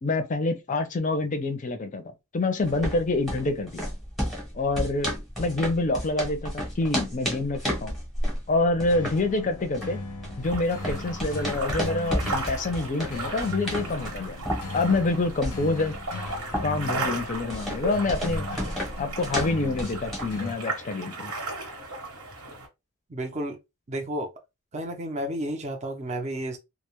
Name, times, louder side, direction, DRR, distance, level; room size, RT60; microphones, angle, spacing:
voice 1, 0.0-2.0 2.3-3.9 4.5-8.0 8.5-10.0 10.4-14.4 14.7-16.0 16.6-18.5 19.0-21.3, left 2 dB, 35° left, 0.5 m, -27 dB
sound 1, 2.6-20.4, equal, ahead, 0.8 m, -33 dB
sound 2, 8.9-20.5, left 2 dB, 90° left, 0.5 m, -39 dB
sound 3, 10.4-22.7, right 2 dB, 75° right, 1.0 m, -36 dB
voice 2, 23.1-23.6 23.9-24.3 24.7-26.6, right 1 dB, 30° right, 0.5 m, -31 dB
2.1 x 2.0 x 2.9 m
head